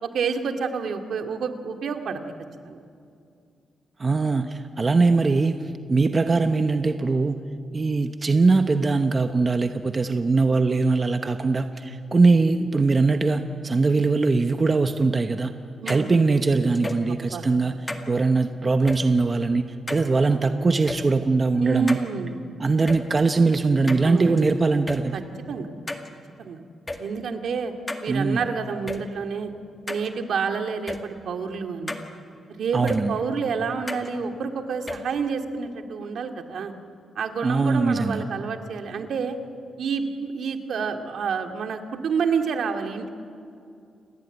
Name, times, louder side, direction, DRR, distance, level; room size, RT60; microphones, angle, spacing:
voice 1, 0.0-2.2 2.6-2.8 15.8-16.1 17.3-17.5 21.6-22.4 24.0-24.5 25.1-25.2 25.5-25.7 26.4-26.6 27.0-27.7 28.0-29.5 29.9-32.0 32.6-36.7 37.2-39.4 39.8-43.1, right 5 dB, 70° right, 5 dB, 2.3 m, -28 dB
voice 2, 4.0-5.6 5.9-7.4 7.7-15.5 15.9-17.8 18.1-22.0 22.6-25.2 28.1-28.4 32.7-33.2 37.4-38.2, right 3 dB, 30° right, 7 dB, 1.0 m, -21 dB
sound 1, 15.9-16.0 16.8-17.1 17.9-18.0 18.9-19.0 19.9-20.1 20.9-21.0 21.9-22.0 22.9-23.0 23.9-24.4 24.9-25.0 25.9-26.1 26.9-27.0 27.9-28.0 28.9-29.0 29.9-30.1 30.9-31.0 31.9-32.0 32.9-33.0 33.9-34.1 34.9-35.0, left 2 dB, 15° left, 2.0 m, -32 dB
29.5 x 20.5 x 9.2 m, 2.4 s
wide cardioid pair, 140°, 0 cm